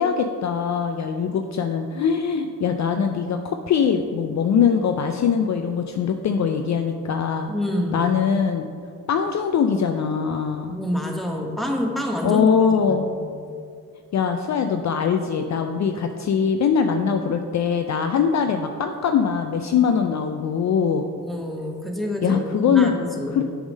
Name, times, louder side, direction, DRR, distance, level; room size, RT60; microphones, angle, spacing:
voice 1, 0.0-7.5 7.9-8.7 9.1-10.7 12.2-13.1 14.1-21.1 22.2-22.9 23.3-23.4, left 6 dB, 45° left, 6 dB, 0.4 m, -22 dB
voice 2, 7.5-8.1 10.7-13.2 21.2-23.4, equal, ahead, 1 dB, 1.1 m, -27 dB
6.9 x 3.6 x 5.2 m, 2.3 s
supercardioid pair, 55°, 38 cm